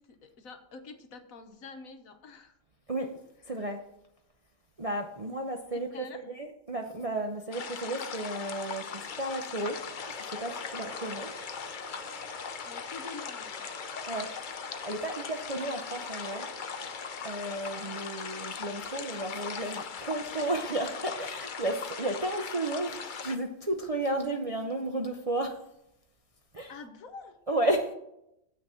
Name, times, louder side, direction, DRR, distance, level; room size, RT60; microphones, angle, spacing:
voice 1, 0.0-2.6 5.7-6.2 12.6-13.7 26.7-27.4, left 4 dB, 55° left, 7 dB, 1.4 m, -47 dB
voice 2, 3.4-3.8 4.8-9.8 10.1-11.3 14.1-14.3 14.8-16.5 17.2-25.6 26.5-26.7 27.5-27.9, right 1 dB, 50° right, 3 dB, 0.4 m, -33 dB
sound 1, 7.5-23.4, left 6 dB, 75° left, 0.4 m, -39 dB
sound 2, 9.9-18.6, right 2 dB, 25° right, 1.2 m, -50 dB
8.0 x 6.2 x 7.0 m, 0.82 s
omnidirectional pair, 1.8 m